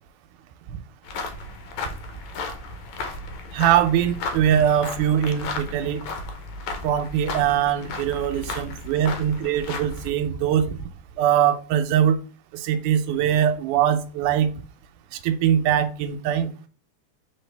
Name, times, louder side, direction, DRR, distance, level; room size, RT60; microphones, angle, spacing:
sound 1, 1.0-10.1, left 3 dB, 75° left, 1.8 m, -34 dB
voice 1, 3.5-6.0 6.8-10.8 11.2-12.2 12.5-14.5 15.1-16.5, right 10 dB, 85° right, 2.1 m, -22 dB
4.4 x 3.4 x 3.3 m
omnidirectional pair, 3.5 m